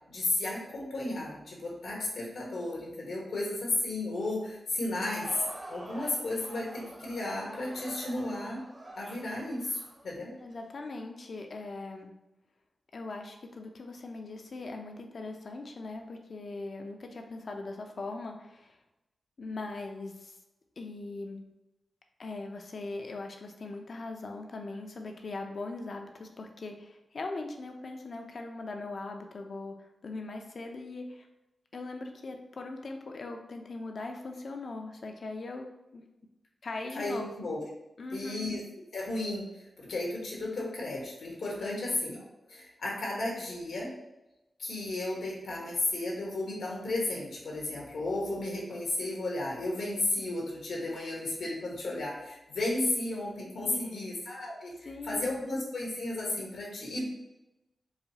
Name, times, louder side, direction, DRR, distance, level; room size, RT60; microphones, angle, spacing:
voice 1, 0.1-5.4 5.7-8.6 9.0-10.3 36.9-37.6 38.1-38.6 38.9-42.2 42.5-43.9 44.6-57.1, left 2 dB, 85° left, -3 dB, 1.2 m, -34 dB
Crowd, 4.7-10.6, right 1 dB, 40° right, 1.0 m, -46 dB
voice 2, 10.4-12.1 12.9-18.8 19.4-20.3 20.8-21.4 22.2-29.8 30.0-31.3 31.7-36.0 36.6-37.3 38.0-38.5 41.6-41.9 51.0-51.1 53.6-54.2 54.8-55.5, left 3 dB, 65° left, 4 dB, 0.6 m, -40 dB
4.8 x 2.3 x 2.8 m, 0.94 s
cardioid pair, 60°, 0 cm